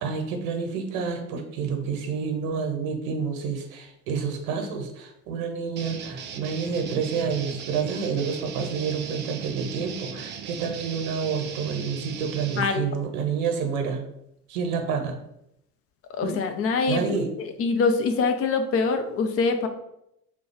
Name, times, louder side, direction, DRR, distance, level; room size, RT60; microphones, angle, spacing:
voice 1, 0.0-14.0 14.5-15.2 16.2-16.4 16.9-17.3, right 5 dB, 55° right, 4 dB, 1.0 m, -29 dB
sound 1, 5.8-12.6, right 7 dB, 25° right, 0.4 m, -38 dB
voice 2, 12.6-12.9 16.1-17.0 17.6-19.7, left 4 dB, 30° left, 7 dB, 0.5 m, -24 dB
3.8 x 2.3 x 4.5 m, 0.81 s
figure-of-eight pair, 65°, 47 cm